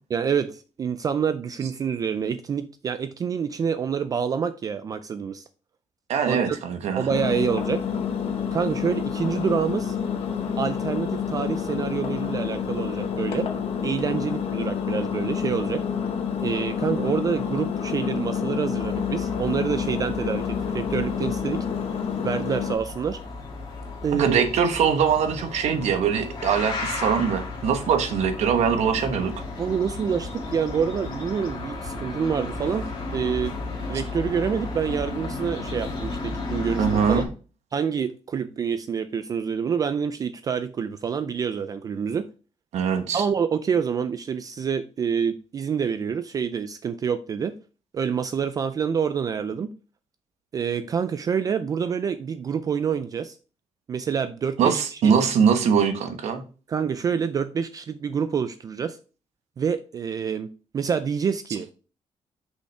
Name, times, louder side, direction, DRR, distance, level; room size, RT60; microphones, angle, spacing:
voice 1, 0.1-5.4 6.3-6.6 7.0-7.8 8.5-10.0 10.6-13.5 13.8-15.8 16.4-21.7 22.2-23.2 24.0-24.4 29.6-32.9 33.1-33.6 33.9-37.2 37.7-42.3 43.1-47.5 47.9-49.7 50.5-53.4 53.9-55.2 56.7-59.0 59.6-61.7, right 7 dB, 35° right, 11 dB, 0.3 m, -27 dB
voice 2, 6.1-7.1 24.1-29.3 36.8-37.2 42.7-43.2 54.6-56.4, right 7 dB, 80° right, 6 dB, 1.1 m, -22 dB
Engine, 7.1-22.7, left 7 dB, 60° left, 1.0 m, -28 dB
sound 1, 18.7-37.2, left 3 dB, 45° left, 2.0 m, -34 dB
6.3 x 5.5 x 3.3 m, 0.36 s
wide cardioid pair, 175°, 11 cm